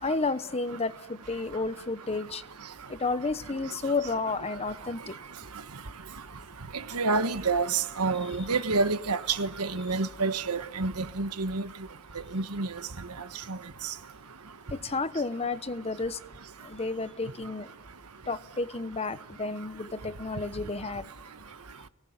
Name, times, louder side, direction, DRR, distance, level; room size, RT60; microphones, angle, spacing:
voice 1, 0.0-2.4 2.9-5.2 8.2-8.5 14.7-16.2 16.6-17.7 18.3-21.1, left 3 dB, 30° left, 0.9 m, -31 dB
voice 2, 6.9-11.7 12.3-12.7 13.5-13.6, right 4 dB, 85° right, 1.3 m, -28 dB
29.5 x 19.0 x 9.4 m
head